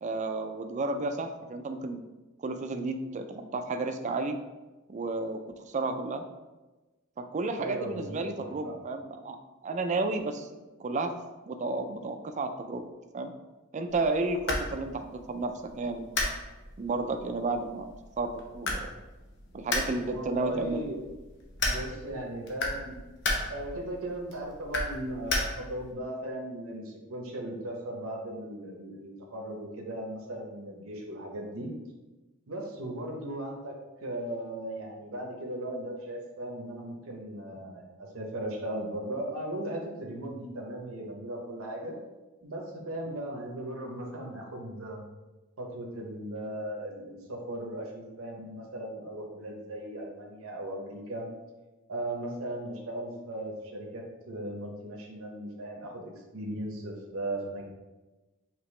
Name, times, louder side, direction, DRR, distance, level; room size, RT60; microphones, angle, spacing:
voice 1, 0.0-2.0 2.4-4.4 4.9-5.4 5.7-6.2 7.2-9.4 9.6-11.1 11.5-12.9 13.1-13.3 13.7-16.1 16.8-18.9 19.5-20.8, right 3 dB, 35° right, 7 dB, 0.3 m, -32 dB
voice 2, 7.5-8.8 20.0-21.0 21.6-22.9 23.5-31.7 32.5-33.7 34.0-41.9 42.4-45.1 45.6-51.3 51.9-57.6, right 1 dB, 75° right, 0 dB, 0.7 m, -37 dB
sound 1, 13.9-25.9, left 2 dB, 55° left, 0.8 m, -35 dB
4.9 x 2.9 x 3.1 m, 1.1 s
head